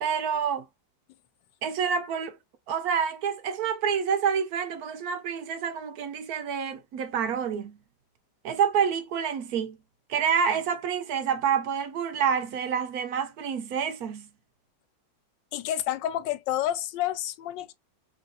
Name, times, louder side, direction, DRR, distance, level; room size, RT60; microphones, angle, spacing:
voice 1, 0.0-0.6 1.6-2.4 2.7-7.8 8.4-9.8 10.1-14.3, right 7 dB, 70° right, 1.0 m, -28 dB
voice 2, 15.5-17.7, left 12 dB, 90° left, 1.3 m, -29 dB
4.0 x 3.1 x 2.3 m
omnidirectional pair, 1.9 m